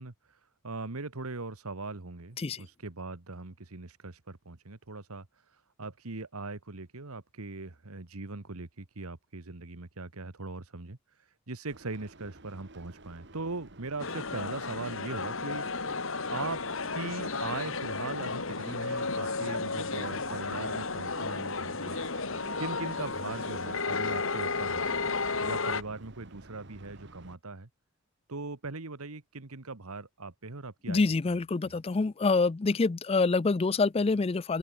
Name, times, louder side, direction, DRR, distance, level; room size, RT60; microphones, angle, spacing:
voice 1, 0.0-22.0 22.6-24.8 25.4-27.7 28.3-31.0 31.3-31.4 31.6-31.7, right 3 dB, 80° right, 1.5 m, -40 dB
sound 1, 11.7-27.4, right 2 dB, 55° right, 2.4 m, -51 dB
sound 2, 14.0-25.8, left 4 dB, 60° left, 2.0 m, -33 dB
voice 2, 30.9-34.6, left 3 dB, 25° left, 0.4 m, -26 dB
open air
head